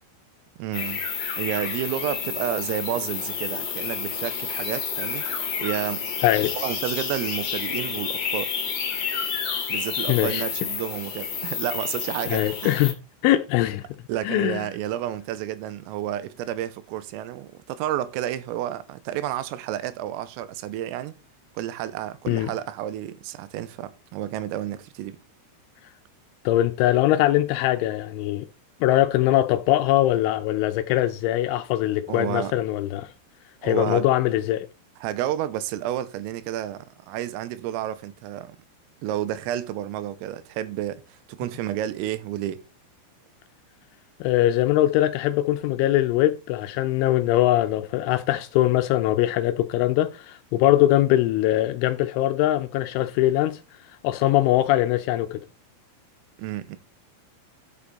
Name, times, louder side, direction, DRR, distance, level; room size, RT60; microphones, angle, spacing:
voice 1, 0.6-1.0 1.4-5.3 5.6-6.1 6.6-8.5 9.7-12.8 14.1-21.2 21.6-25.2 32.1-32.5 33.6-34.1 35.0-38.6 39.0-42.7 56.4-56.8, right 12 dB, 85° right, 3.4 m, -31 dB
sound 1, 0.7-12.9, left 7 dB, 50° left, 2.0 m, -30 dB
voice 2, 6.2-6.5 10.1-10.4 12.3-12.9 13.2-13.9 14.2-14.7 22.3-22.5 26.5-28.5 28.8-33.1 33.6-34.7 44.2-53.6 54.0-55.4, left 14 dB, 80° left, 2.9 m, -22 dB
11.5 x 7.1 x 4.1 m
omnidirectional pair, 6.0 m